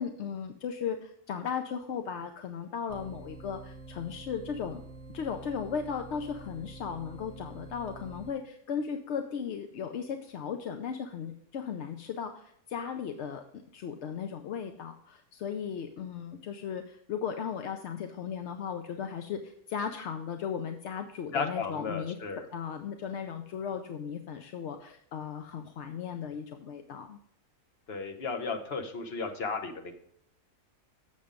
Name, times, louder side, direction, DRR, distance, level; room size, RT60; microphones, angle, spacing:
voice 1, 0.0-4.8 5.1-22.2 22.5-27.2, left 7 dB, 65° left, 6 dB, 0.8 m, -36 dB
sound 1, 2.9-8.3, right 3 dB, 55° right, 1.3 m, -47 dB
voice 2, 21.3-22.5 27.9-29.9, left 4 dB, 45° left, 5 dB, 1.1 m, -34 dB
7.4 x 6.9 x 5.0 m, 0.68 s
omnidirectional pair, 1.6 m